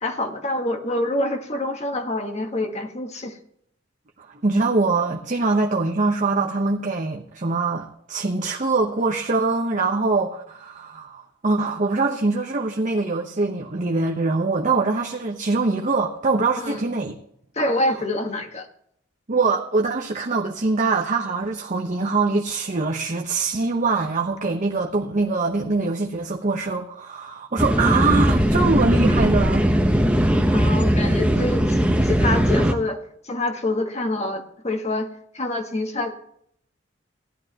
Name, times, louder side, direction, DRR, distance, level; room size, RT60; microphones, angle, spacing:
voice 1, 0.0-3.4 16.6-16.8 17.5-18.7 30.5-33.0 33.2-35.1 35.3-36.1, left 1 dB, 35° left, 4 dB, 1.4 m, -26 dB
voice 2, 4.2-17.1 19.3-29.7, right 3 dB, 40° right, 1 dB, 1.0 m, -23 dB
sound 1, 27.6-32.7, equal, 5° right, 0.9 m, -19 dB
16.5 x 11.5 x 2.9 m, 0.70 s
head